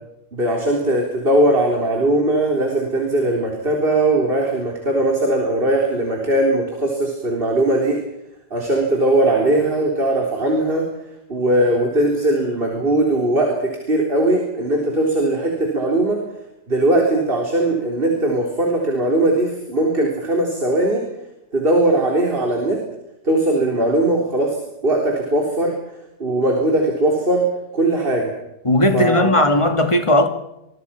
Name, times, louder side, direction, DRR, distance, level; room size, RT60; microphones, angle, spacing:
voice 1, 0.3-8.0 8.5-10.9 11.3-16.2 16.7-21.1 21.5-22.8 23.2-24.6 24.8-25.8 26.2-27.5 27.7-28.3 28.9-29.5, right 1 dB, 35° right, 4.1 m, -19 dB
voice 2, 28.6-30.3, left 1 dB, 20° left, 2.1 m, -16 dB
26.5 x 22.5 x 5.9 m
omnidirectional pair, 1.8 m